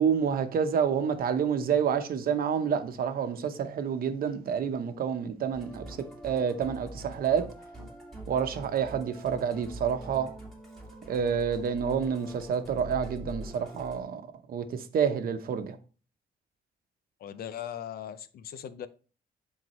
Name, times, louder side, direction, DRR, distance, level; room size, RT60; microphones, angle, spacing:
voice 1, 0.0-6.0 6.2-7.5 8.3-10.3 11.1-14.2 14.5-15.8, right 7 dB, 65° right, 0.9 m, -28 dB
Musical instrument, 5.5-14.0, equal, ahead, 2.6 m, -44 dB
voice 2, 17.2-18.9, left 10 dB, 75° left, 0.6 m, -39 dB
10.5 x 3.8 x 3.1 m
cardioid pair, 100°, 16 cm